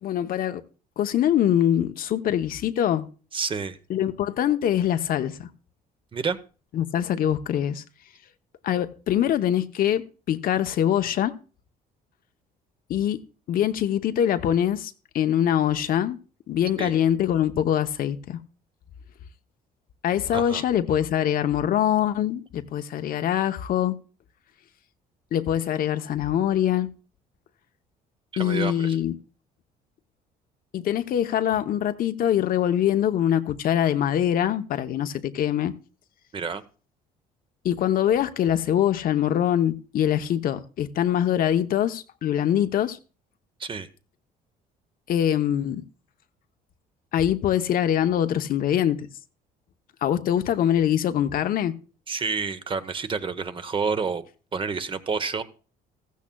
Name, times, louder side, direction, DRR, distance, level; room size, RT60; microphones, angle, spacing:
voice 1, 0.0-0.6 1.0-3.1 3.9-5.5 6.7-7.8 8.6-11.4 12.9-13.2 13.5-16.2 16.5-18.4 20.0-23.9 25.3-26.9 28.4-29.2 30.7-35.7 37.6-43.0 45.1-45.8 47.1-49.1 50.0-51.8, left 10 dB, 60° left, 0.8 m, -23 dB
voice 2, 3.3-3.8 6.1-6.4 16.8-16.9 20.3-20.6 28.3-28.9 36.3-36.6 43.6-43.9 52.1-54.2 54.5-55.4, right 5 dB, 30° right, 0.8 m, -29 dB
15.0 x 14.5 x 2.3 m
cardioid pair, 110°, 17 cm